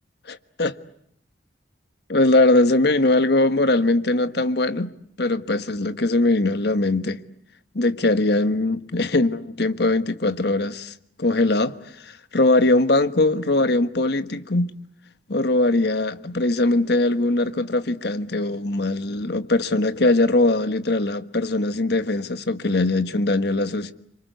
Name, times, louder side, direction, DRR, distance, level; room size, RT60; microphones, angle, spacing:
voice 1, 0.3-0.7 2.1-4.9 5.2-7.2 7.7-14.7 15.3-23.9, left 2 dB, 60° left, 1.4 m, -21 dB
28.0 x 25.5 x 8.1 m
head